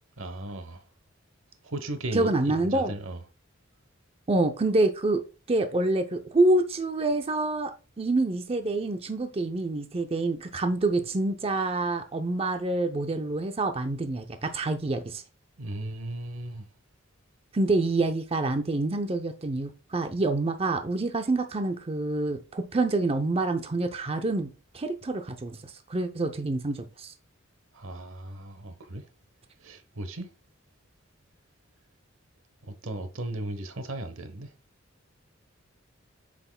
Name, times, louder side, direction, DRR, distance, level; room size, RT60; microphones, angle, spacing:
voice 1, 0.2-0.8 1.6-3.2 15.6-16.7 27.7-29.0 29.6-30.3 32.6-34.5, right 1 dB, 90° right, 1.0 m, -36 dB
voice 2, 2.1-2.9 4.3-5.2 5.5-7.7 8.0-15.2 17.5-24.5 24.7-27.1, right 2 dB, 30° right, 0.5 m, -27 dB
7.9 x 6.0 x 2.2 m
head